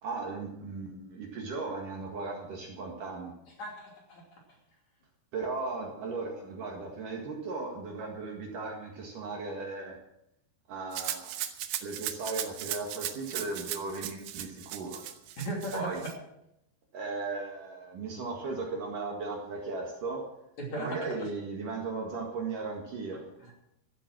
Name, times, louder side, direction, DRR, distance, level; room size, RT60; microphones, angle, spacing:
voice 1, 0.0-3.3 5.3-10.0 10.7-11.4 11.8-15.0 15.7-16.0 16.9-20.3 20.7-23.3, right 3 dB, 55° right, 1 dB, 2.9 m, -37 dB
voice 2, 3.6-4.4 15.4-15.9 20.6-21.1 23.4-23.5, right 1 dB, 40° left, -1 dB, 3.8 m, -37 dB
Rattle (instrument), 10.9-16.1, right 12 dB, 75° right, 2.9 m, -37 dB
13.5 x 12.0 x 6.2 m, 0.82 s
omnidirectional pair, 5.1 m